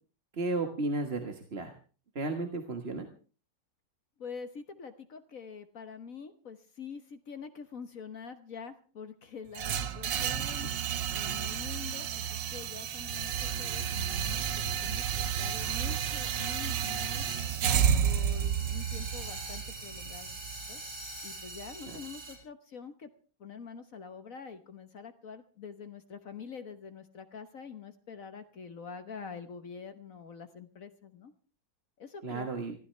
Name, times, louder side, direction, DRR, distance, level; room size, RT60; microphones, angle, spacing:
voice 1, 0.3-1.7 2.1-3.1 10.4-10.5 21.9-22.0 32.2-32.7, right 3 dB, 35° right, 5 dB, 1.6 m, -34 dB
voice 2, 4.2-10.7 11.1-17.3 18.0-20.4 20.7-20.8 21.2-23.1 23.4-31.3 32.0-32.5, left 6 dB, 50° left, 10 dB, 1.4 m, -45 dB
sound 1, 9.5-21.6, right 8 dB, 85° right, 1.7 m, -31 dB
sound 2, 17.2-22.4, right 2 dB, 65° right, 5.8 m, -44 dB
24.0 x 15.5 x 3.3 m, 0.37 s
omnidirectional pair, 1.9 m